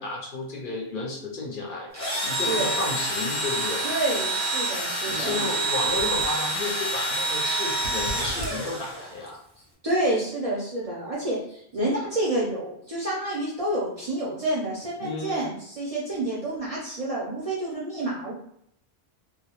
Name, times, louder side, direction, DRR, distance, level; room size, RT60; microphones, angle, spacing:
voice 1, 0.0-3.9 5.1-9.4 15.0-15.5, left 3 dB, 60° left, -1 dB, 0.6 m, -32 dB
Engine / Drill, 1.9-9.3, right 2 dB, 20° left, 0.7 m, -27 dB
voice 2, 3.8-5.4 9.8-18.3, right 1 dB, 50° right, -6 dB, 0.5 m, -28 dB
sound 1, 5.9-6.4 7.7-8.6 11.6-11.7, right 2 dB, 85° right, 0.9 m, -37 dB
2.1 x 2.0 x 2.8 m, 0.70 s
omnidirectional pair, 1.1 m